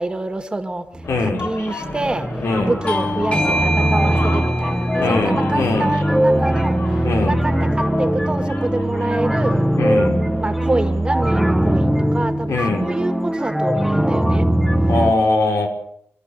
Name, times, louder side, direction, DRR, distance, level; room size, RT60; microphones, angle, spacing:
voice 1, 0.0-9.7 10.4-14.5, right 2 dB, 20° right, 7 dB, 2.0 m, -26 dB
sound 1, 0.9-1.4 1.7-15.1, right 1 dB, ahead, 1.3 m, -20 dB
sound 2, 1.0-11.7, left 2 dB, 55° left, 5.0 m, -33 dB
voice 2, 1.1-1.5 2.4-2.7 5.0-5.9 7.0-7.4 9.8-10.2 12.5-12.9 14.9-15.7, left 2 dB, 90° left, 2 dB, 5.7 m, -21 dB
Bell / Doorbell, 2.9-8.1, equal, 25° left, 2.7 m, -29 dB
27.0 x 13.0 x 8.2 m, 0.71 s
wide cardioid pair, 160°, 5 cm